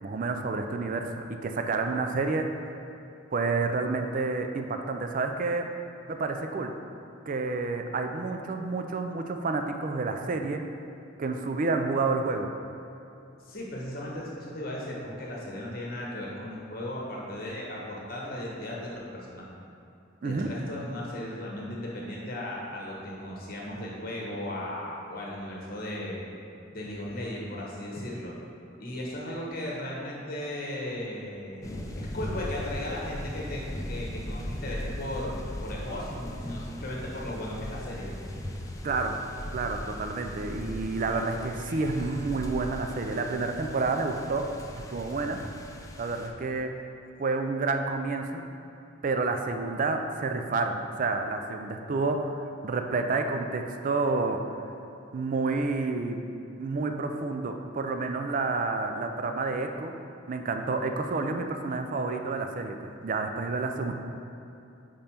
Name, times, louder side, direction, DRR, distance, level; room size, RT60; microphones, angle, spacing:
voice 1, 0.0-1.0 1.3-2.7 3.3-5.7 6.1-6.7 7.3-10.6 11.2-12.5 20.2-20.5 38.8-39.2 39.5-44.4 44.7-45.4 46.0-46.7 47.2-48.4 49.0-52.3 52.6-54.4 55.1-56.2 56.6-59.9 60.3-63.9, right 3 dB, 40° right, 5 dB, 0.4 m, -29 dB
voice 2, 13.4-19.5 20.2-26.2 26.7-28.3 28.8-38.1, left 1 dB, 50° left, -4 dB, 1.2 m, -36 dB
sound 1, 31.6-46.3, left 1 dB, 15° left, 0.4 m, -38 dB
5.3 x 5.2 x 4.4 m, 2.7 s
head